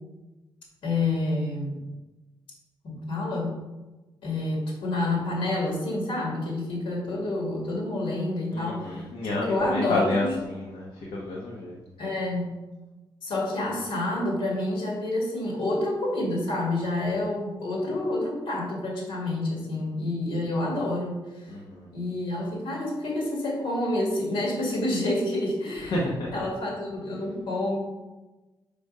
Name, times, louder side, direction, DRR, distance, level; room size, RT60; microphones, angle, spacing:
voice 1, 0.8-1.8 2.8-3.6 4.2-9.0 9.3-10.3 12.0-12.5 13.2-21.5 21.9-26.0 26.3-27.8, left 2 dB, 85° left, -2 dB, 2.1 m, -28 dB
voice 2, 8.5-11.8 21.5-21.9 25.9-26.3, left 2 dB, 70° left, -3 dB, 1.1 m, -30 dB
5.2 x 4.9 x 5.5 m, 1.1 s
wide cardioid pair, 175°, 9 cm